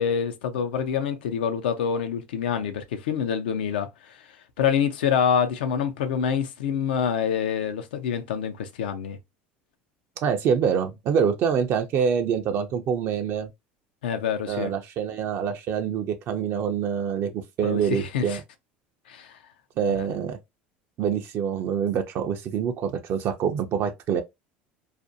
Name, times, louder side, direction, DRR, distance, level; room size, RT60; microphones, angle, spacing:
voice 1, 0.0-4.2 4.6-9.2 14.0-14.7 17.6-18.4 19.1-19.4 20.0-20.1, left 7 dB, 85° left, 0.5 m, -26 dB
voice 2, 10.2-13.5 14.5-18.4 19.8-20.4 21.0-24.2, right 7 dB, 50° right, 0.4 m, -25 dB
2.5 x 2.1 x 2.6 m
supercardioid pair, 90°, 5 cm